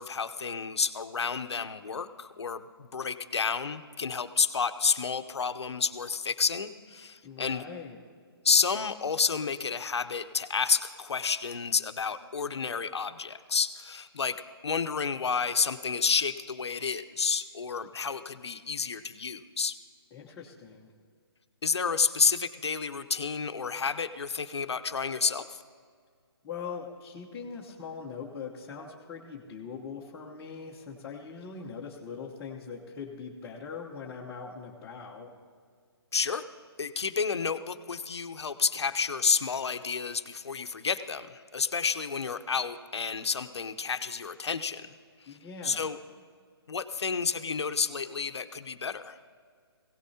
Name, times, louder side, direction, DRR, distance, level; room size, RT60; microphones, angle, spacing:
voice 1, 0.0-7.6 8.4-14.4 14.6-19.8 21.6-25.6 36.1-36.4 36.8-44.9 45.2-45.4 45.6-46.0 46.7-49.2, left 5 dB, 85° left, 10 dB, 0.8 m, -30 dB
voice 2, 7.2-8.0 20.1-20.9 26.4-35.3 45.3-45.9, left 5 dB, 15° left, -6 dB, 1.1 m, -41 dB
19.0 x 17.0 x 2.8 m, 2.1 s
hypercardioid pair, 155°, 14 cm